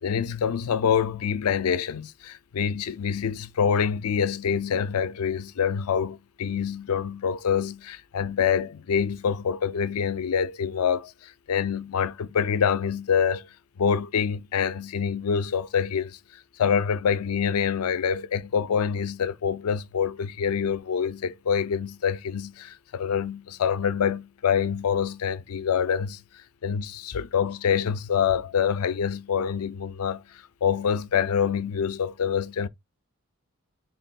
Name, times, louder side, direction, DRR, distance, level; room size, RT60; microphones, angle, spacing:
voice 1, 0.0-13.5 13.8-16.2 16.6-26.2 26.6-32.7, left 7 dB, 80° left, 0.4 m, -26 dB
6.6 x 3.4 x 2.2 m
head